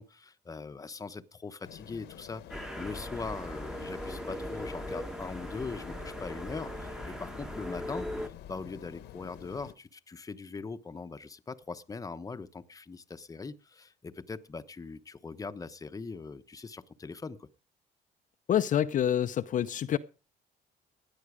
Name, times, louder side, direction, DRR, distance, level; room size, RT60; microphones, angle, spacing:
voice 1, 0.0-17.5, left 4 dB, 20° left, 1.0 m, -41 dB
sound 1, 1.6-9.7, left 12 dB, 80° left, 1.4 m, -48 dB
sound 2, 2.5-8.3, equal, 5° right, 1.2 m, -39 dB
voice 2, 18.5-20.0, left 10 dB, 50° left, 0.7 m, -27 dB
17.0 x 10.0 x 4.9 m
cardioid pair, 110°, 17 cm